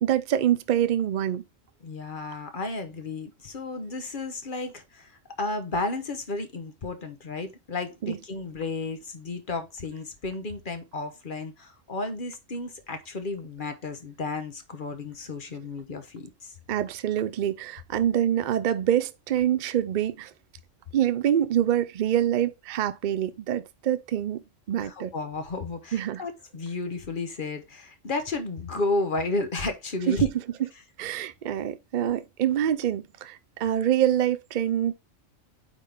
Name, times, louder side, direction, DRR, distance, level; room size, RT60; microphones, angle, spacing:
voice 1, 0.0-1.4 8.0-8.2 16.7-20.3 20.9-24.4 24.7-25.1 25.9-26.2 30.1-30.3 31.0-34.9, right 10 dB, 65° right, 0.4 m, -25 dB
voice 2, 1.8-16.5 24.8-30.3, left 3 dB, 45° left, 1.1 m, -33 dB
8.9 x 3.8 x 3.5 m
omnidirectional pair, 1.3 m